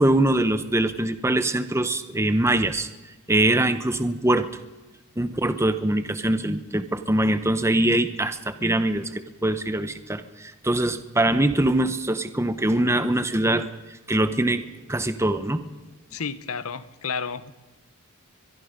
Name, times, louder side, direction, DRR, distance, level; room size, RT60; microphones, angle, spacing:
voice 1, 0.0-2.9 3.3-4.5 5.2-15.6, right 1 dB, 10° right, 11 dB, 0.9 m, -23 dB
voice 2, 16.1-17.5, left 5 dB, 75° left, 14 dB, 1.0 m, -31 dB
23.0 x 22.5 x 5.2 m, 1.1 s
head